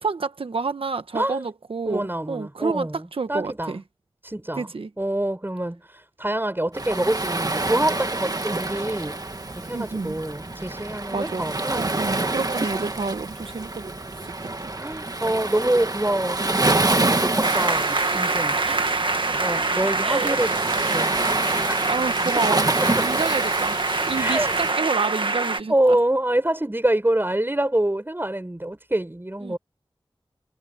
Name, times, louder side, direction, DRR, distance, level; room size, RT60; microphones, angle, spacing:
voice 1, 0.0-3.8 4.5-4.9 9.7-10.2 11.1-13.9 14.6-14.7 18.6-19.4 20.0-20.4 21.9-26.0 29.4-29.6, right 4 dB, 85° right, 1.3 m, -29 dB
voice 2, 1.1-1.5 1.9-3.8 4.2-4.7 5.0-9.2 9.5-11.9 14.8-18.6 19.4-21.1 21.7-21.8 22.4-23.0 24.1-24.5 25.7-29.6, right 1 dB, 25° right, 5.5 m, -26 dB
Waves surf, 6.7-24.7, right 2 dB, 45° right, 1.9 m, -27 dB
sound 1, 17.4-25.6, right 3 dB, 65° right, 1.7 m, -25 dB
wide cardioid pair, 50°, 9 cm